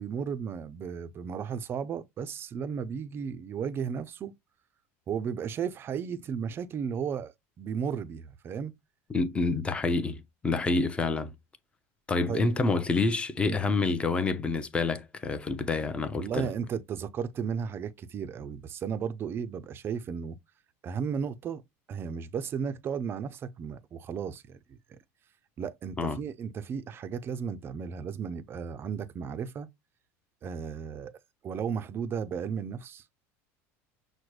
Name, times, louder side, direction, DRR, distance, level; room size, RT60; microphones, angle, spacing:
voice 1, 0.0-4.3 5.1-8.7 12.3-12.4 13.5-13.7 16.2-20.4 20.8-21.6 21.9-25.0 25.6-29.7 30.4-31.1 31.4-33.0, right 7 dB, 30° right, 0.5 m, -34 dB
voice 2, 9.1-11.3 12.1-16.5 26.0-26.2, left 3 dB, 15° left, 0.6 m, -28 dB
6.1 x 2.1 x 3.2 m
supercardioid pair, 125°, 7 cm